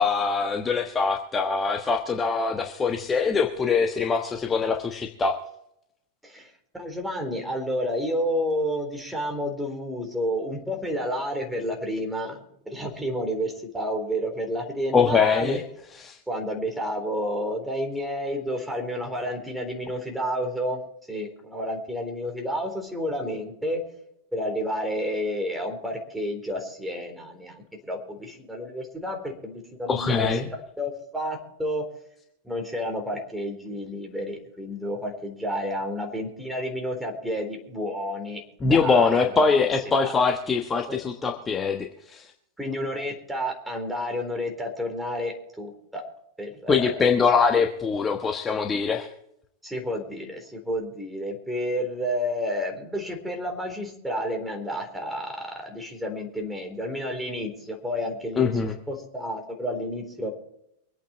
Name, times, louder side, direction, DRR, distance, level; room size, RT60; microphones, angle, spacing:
voice 1, 0.0-5.3 14.9-15.6 16.0-16.2 29.9-30.5 38.6-42.3 46.7-49.1 58.4-58.7, left 5 dB, 20° left, 3 dB, 1.3 m, -23 dB
voice 2, 6.2-15.6 16.3-20.8 21.1-23.8 24.3-30.3 30.8-31.9 32.4-39.3 39.6-39.7 40.0-40.1 40.9-41.3 42.6-46.0 46.4-47.0 49.6-58.6 58.9-60.3, equal, 5° right, 3 dB, 3.9 m, -30 dB
24.0 x 8.8 x 4.4 m, 0.75 s
figure-of-eight pair, 90°, 0 cm